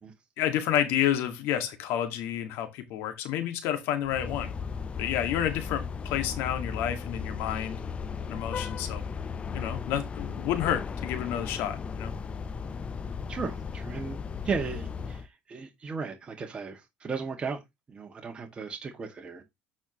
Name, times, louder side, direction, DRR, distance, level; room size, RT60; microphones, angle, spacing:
voice 1, 0.4-4.5 5.0-7.8 8.3-9.0 9.5-12.1, left 10 dB, 70° left, 2.0 m, -30 dB
sound 1, 4.0-15.3, left 6 dB, 30° left, 0.7 m, -36 dB
voice 2, 13.3-14.2 14.4-17.6 17.9-19.4, right 5 dB, 25° right, 2.0 m, -35 dB
8.8 x 5.8 x 3.1 m
supercardioid pair, 110°, 4 cm